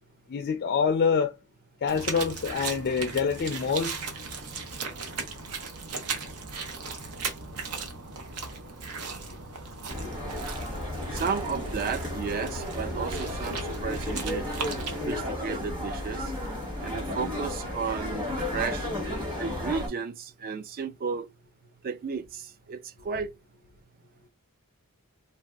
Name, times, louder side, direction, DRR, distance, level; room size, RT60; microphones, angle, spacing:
voice 1, 0.3-1.3 1.8-4.0, left 5 dB, 45° left, 0.3 m, -26 dB
sound 1, 1.9-15.2, right 4 dB, 80° right, 0.7 m, -37 dB
sound 2, 9.9-19.9, left 1 dB, 20° right, 1.3 m, -33 dB
voice 2, 11.1-14.5 14.9-16.3 16.8-18.2 18.5-18.9 19.4-21.3 21.8-23.3, right 5 dB, 40° right, 0.3 m, -33 dB
3.1 x 2.6 x 2.3 m
head